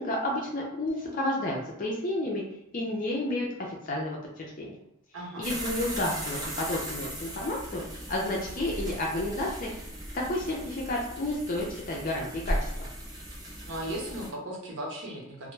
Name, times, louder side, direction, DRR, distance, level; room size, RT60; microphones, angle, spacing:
voice 1, 0.0-2.4 2.7-4.8 5.4-7.8 8.1-9.7 10.1-12.9, left 1 dB, 45° left, -2 dB, 0.4 m, -31 dB
voice 2, 5.1-5.5 13.7-15.5, right 1 dB, 85° right, -2 dB, 0.8 m, -36 dB
sound 1, 5.4-14.3, equal, 20° right, 0.6 m, -37 dB
2.2 x 2.0 x 3.1 m, 0.80 s
head